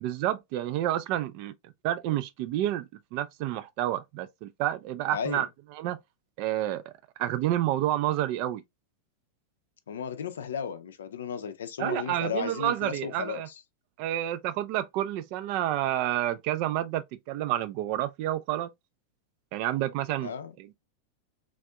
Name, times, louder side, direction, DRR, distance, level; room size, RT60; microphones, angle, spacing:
voice 1, 0.0-5.5 5.8-6.0 6.4-6.9 7.2-8.6 11.8-13.5 14.0-18.7 19.5-20.3 20.6-20.7, right 13 dB, 45° right, 0.4 m, -29 dB
voice 2, 5.1-5.5 9.9-13.4 20.2-20.5, left 7 dB, 65° left, 0.5 m, -34 dB
3.4 x 2.5 x 2.3 m
figure-of-eight pair, 90°, 0 cm